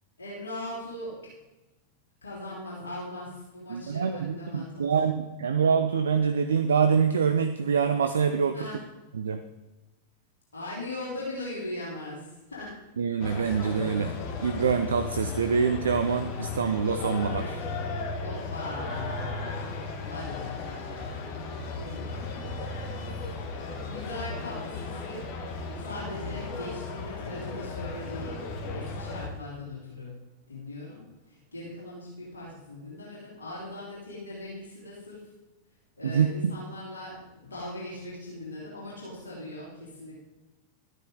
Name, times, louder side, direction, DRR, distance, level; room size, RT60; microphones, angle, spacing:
voice 1, 0.2-1.3 2.2-5.0 8.5-8.8 10.5-12.8 18.2-19.7 20.1-23.1 23.7-25.3 25.7-28.4 28.7-30.1 30.5-35.3 36.0-40.2, left 1 dB, 75° left, -6 dB, 3.4 m, -40 dB
voice 2, 3.7-8.6 9.1-9.4 13.0-14.1 14.4-17.6 36.0-36.3, right 6 dB, 70° right, 9 dB, 0.5 m, -25 dB
sound 1, 13.2-29.3, left 4 dB, 45° left, 1.4 m, -35 dB
12.5 x 9.2 x 3.8 m, 1.1 s
figure-of-eight pair, 90°, 0 cm